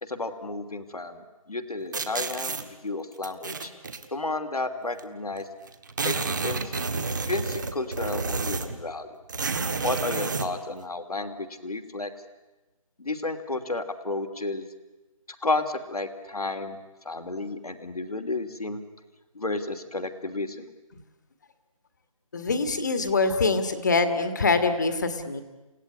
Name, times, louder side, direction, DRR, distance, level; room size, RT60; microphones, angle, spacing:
voice 1, 0.0-3.7 4.1-5.5 6.0-6.1 6.4-9.1 9.8-12.1 13.0-14.7 15.4-16.8 17.0-18.8 19.3-20.7, left 2 dB, 90° left, 7 dB, 2.9 m, -32 dB
sound 1, 1.9-2.6 3.2-4.0 5.0-5.1 5.3-5.4 5.7-8.8 9.3-10.5, right 4 dB, 30° right, 1.6 m, -30 dB
voice 2, 22.3-25.4, left 3 dB, 30° left, 9 dB, 1.8 m, -24 dB
29.5 x 17.5 x 9.7 m, 1.1 s
figure-of-eight pair, 170°, 19 cm